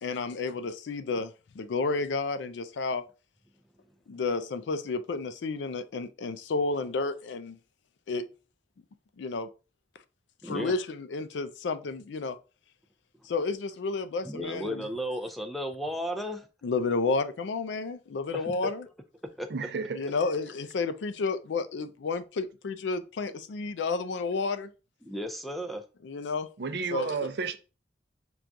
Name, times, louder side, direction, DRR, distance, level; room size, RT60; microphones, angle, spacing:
voice 1, 0.0-3.0 4.1-7.6 8.1-8.2 9.2-9.5 10.4-12.4 13.2-14.9 16.6-18.8 19.9-24.7 26.0-26.5 26.9-27.2, left 3 dB, 85° left, 0.4 m, -31 dB
voice 2, 10.4-10.7 14.2-16.5 18.3-18.7 19.4-19.5 25.0-25.8, equal, ahead, 0.4 m, -34 dB
voice 3, 19.5-20.0 26.6-27.6, right 5 dB, 65° right, 0.4 m, -31 dB
5.9 x 2.3 x 2.6 m
head